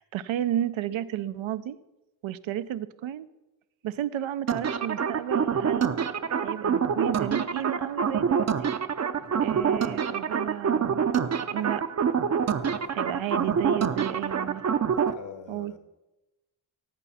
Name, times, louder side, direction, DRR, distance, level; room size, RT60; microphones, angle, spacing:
voice 1, 0.0-1.8 2.2-3.3 3.8-5.9 6.4-8.7 9.4-11.1 11.5-11.8 12.9-14.6 15.5-15.7, right 11 dB, 85° right, 13 dB, 0.6 m, -32 dB
sound 1, 4.5-15.1, right 7 dB, 35° right, 0.6 m, -26 dB
voice 2, 9.2-9.5 12.5-14.5 14.9-15.8, left 5 dB, 70° left, 7 dB, 1.8 m, -47 dB
16.5 x 8.2 x 4.2 m, 1.0 s
cardioid pair, 80°, 46 cm